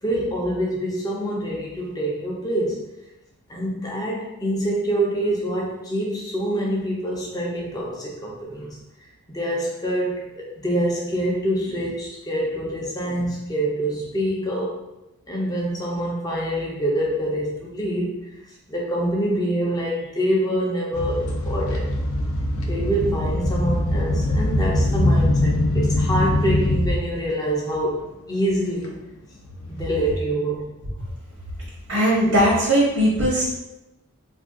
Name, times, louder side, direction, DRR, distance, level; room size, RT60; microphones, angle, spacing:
voice 1, 0.0-2.9 3.5-8.8 9.3-14.7 15.3-18.2 18.7-21.9 22.6-28.0 28.3-29.0 29.7-30.7, right 1 dB, 15° left, -3 dB, 0.5 m, -25 dB
sound 1, 20.9-27.2 27.7-27.9 28.8-28.9 29.7-29.8, left 1 dB, 70° left, 0.5 m, -22 dB
voice 2, 31.9-33.5, equal, 70° right, -7 dB, 0.9 m, -19 dB
2.5 x 2.3 x 3.5 m, 0.94 s
head